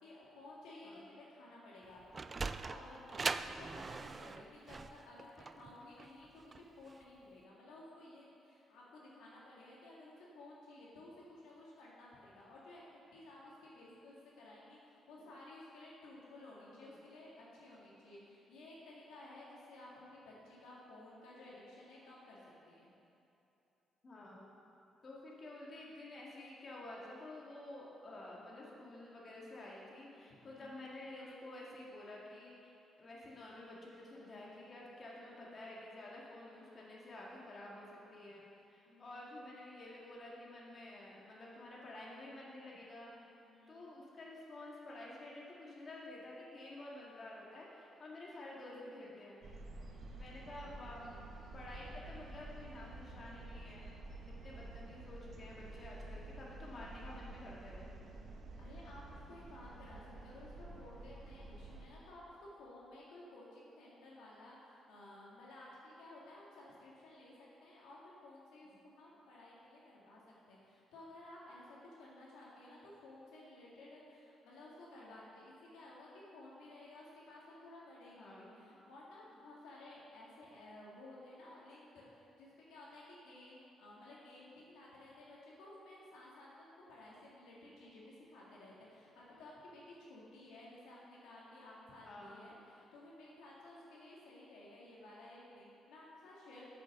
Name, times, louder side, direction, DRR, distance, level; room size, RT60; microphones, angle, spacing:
voice 1, 0.0-22.4 22.7-22.9 30.4-30.8 38.9-39.1 43.4-43.8 58.6-96.7, left 1 dB, 90° left, -5 dB, 2.0 m, -55 dB
Sliding door, 1.8-7.0, right 4 dB, 35° right, 0.3 m, -41 dB
voice 2, 16.7-17.0 24.0-24.5 25.0-43.1 43.7-49.5 50.1-51.1 51.5-53.9 54.3-57.9 78.2-78.5 92.0-92.4, left 1 dB, 40° left, -4 dB, 2.0 m, -51 dB
sound 1, 49.4-61.8, right 2 dB, 55° right, 1.1 m, -50 dB
7.9 x 6.3 x 6.4 m, 2.9 s
cardioid pair, 90°, 0 cm